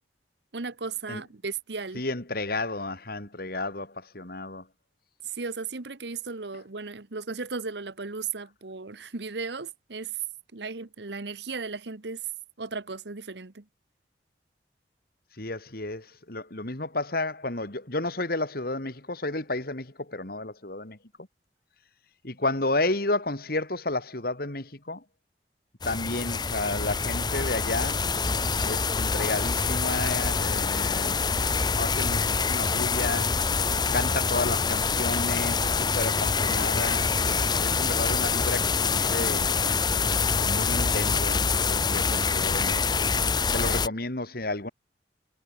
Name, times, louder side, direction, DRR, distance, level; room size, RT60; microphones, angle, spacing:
voice 1, 0.5-2.0 5.2-10.2 10.5-12.3 12.6-13.6, right 4 dB, 70° right, 1.2 m, -35 dB
voice 2, 1.9-4.7 15.4-21.0 22.2-25.0 25.8-28.1 28.6-31.3 31.8-33.4 33.9-39.5 40.4-42.9 43.5-44.7, left 2 dB, 55° left, 2.8 m, -32 dB
sound 1, 25.8-43.9, left 5 dB, 25° left, 0.7 m, -25 dB
head